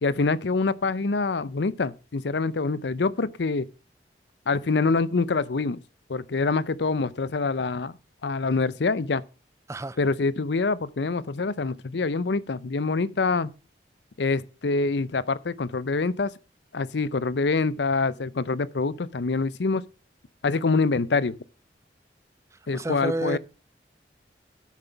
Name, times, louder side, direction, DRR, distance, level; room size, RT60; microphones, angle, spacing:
voice 1, 0.0-3.7 4.5-5.8 6.1-7.9 8.2-9.2 10.0-13.5 14.2-16.3 16.7-19.8 20.4-21.4 22.7-23.4, left 3 dB, 75° left, 0.6 m, -25 dB
voice 2, 22.7-23.4, right 1 dB, 15° right, 0.4 m, -29 dB
9.2 x 7.4 x 5.7 m
head